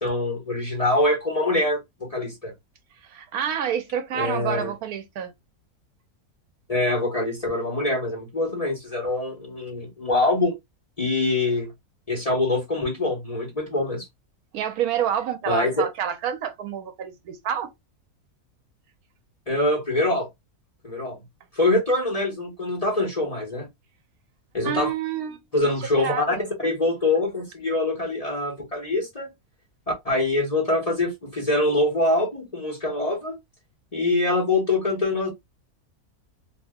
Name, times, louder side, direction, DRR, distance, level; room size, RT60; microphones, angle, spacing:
voice 1, 0.0-2.5 4.1-4.7 6.7-10.5 11.0-11.7 12.1-14.1 15.5-15.9 19.5-20.3 20.8-21.2 21.5-23.7 24.5-24.9 25.5-29.3 30.0-33.4 33.9-35.3, left 2 dB, 30° left, 0.8 m, -24 dB
voice 2, 3.0-5.3 14.5-17.7 24.6-25.4 26.0-26.5, right 9 dB, 75° right, 1.1 m, -28 dB
2.7 x 2.1 x 3.5 m
omnidirectional pair, 1.6 m